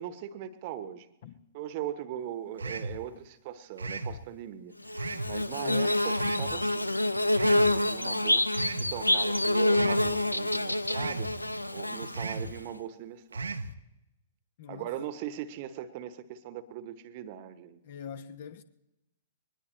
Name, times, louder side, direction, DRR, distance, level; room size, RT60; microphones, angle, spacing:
voice 1, 0.0-1.1 1.5-6.9 7.4-11.3 11.7-13.6 14.7-17.8, right 11 dB, 40° right, 1.1 m, -40 dB
sound 1, 2.6-3.0 3.8-4.2 5.0-5.3 6.2-6.5 7.3-7.7 8.5-8.9 9.7-10.1 10.9-11.3 12.1-12.5 13.3-13.7, right 3 dB, 75° right, 0.8 m, -35 dB
Bird / Buzz, 4.9-12.6, left 1 dB, 85° left, 0.6 m, -27 dB
voice 2, 5.6-5.9 14.6-14.9 17.8-18.6, left 7 dB, 50° left, 1.1 m, -43 dB
22.5 x 19.5 x 3.2 m
figure-of-eight pair, 110°, 0 cm